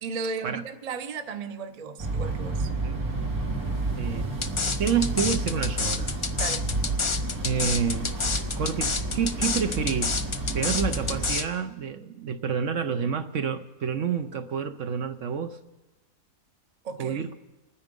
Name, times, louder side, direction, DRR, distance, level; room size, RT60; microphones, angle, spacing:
voice 1, 0.0-2.7 6.4-6.7 16.8-17.2, right 5 dB, 30° right, 0.8 m, -35 dB
sound 1, 2.0-11.3, right 2 dB, 80° right, 2.8 m, -30 dB
voice 2, 4.0-4.3 4.8-6.1 7.4-8.2 8.6-10.2 10.5-15.6 17.0-17.3, right 7 dB, 60° right, 1.0 m, -28 dB
sound 2, 4.4-11.4, left 4 dB, 40° left, 0.4 m, -28 dB
28.0 x 9.8 x 5.3 m
omnidirectional pair, 1.6 m